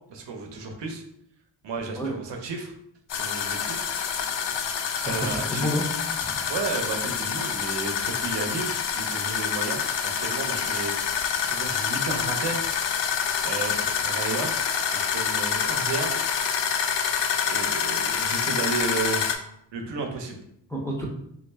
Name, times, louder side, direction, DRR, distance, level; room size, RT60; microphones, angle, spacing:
voice 1, 0.1-1.0 1.6-2.7 3.1-3.8 4.4-4.7 5.0-5.7 6.5-12.7 13.4-14.5 14.9-16.2 17.4-19.3 19.7-20.4, right 4 dB, 75° right, 3 dB, 0.7 m, -33 dB
sound 1, 3.1-19.3, left 7 dB, 75° left, 0.5 m, -27 dB
voice 2, 5.1-5.8 6.2-6.5 19.9-20.0 20.7-21.1, equal, 5° left, -3 dB, 0.5 m, -30 dB
3.3 x 2.5 x 3.2 m, 0.73 s
wide cardioid pair, 155°, 43 cm